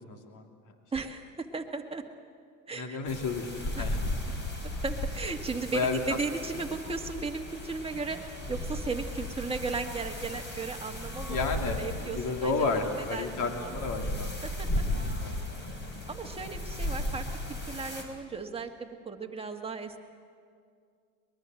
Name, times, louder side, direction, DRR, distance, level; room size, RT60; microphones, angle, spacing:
voice 1, 0.1-0.5 2.7-4.4 5.7-6.2 11.3-14.3 14.9-15.4, left 4 dB, 50° left, 4 dB, 3.1 m, -32 dB
voice 2, 0.9-2.0 2.7-3.0 3.8-4.0 4.8-8.2 8.5-13.7 14.4-14.7 16.1-17.3 17.7-20.0, right 4 dB, 15° right, 3 dB, 1.9 m, -36 dB
sound 1, 3.1-18.0, left 1 dB, 25° left, 4.8 m, -36 dB
23.0 x 21.5 x 7.8 m, 2.2 s
supercardioid pair, 105°, 40 cm